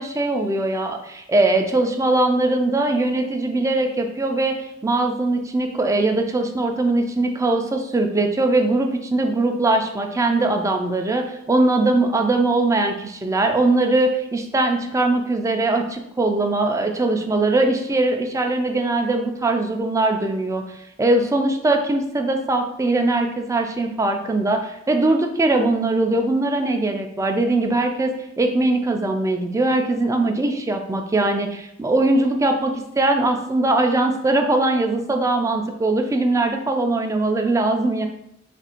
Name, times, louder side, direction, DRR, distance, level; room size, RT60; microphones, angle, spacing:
voice 1, 0.0-20.6 21.0-38.1, right 2 dB, 15° right, 4 dB, 0.3 m, -21 dB
3.1 x 2.5 x 4.2 m, 0.78 s
head